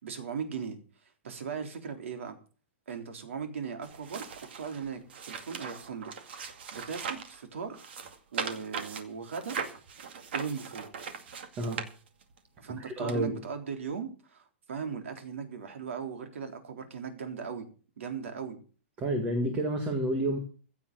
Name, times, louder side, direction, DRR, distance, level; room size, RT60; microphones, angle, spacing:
voice 1, 0.0-0.8 1.2-2.4 2.9-4.3 4.6-7.9 8.3-9.6 10.3-10.9 12.6-17.7 18.0-18.6, right 6 dB, 85° right, 6 dB, 3.6 m, -38 dB
sound 1, 3.8-7.4 7.7-12.4 13.1-13.2, right 6 dB, 55° right, 2.2 m, -39 dB
voice 2, 12.6-13.4 19.0-20.4, right 1 dB, 15° right, 5 dB, 1.7 m, -30 dB
16.0 x 7.1 x 7.5 m, 0.40 s
hypercardioid pair, 180°, 7 cm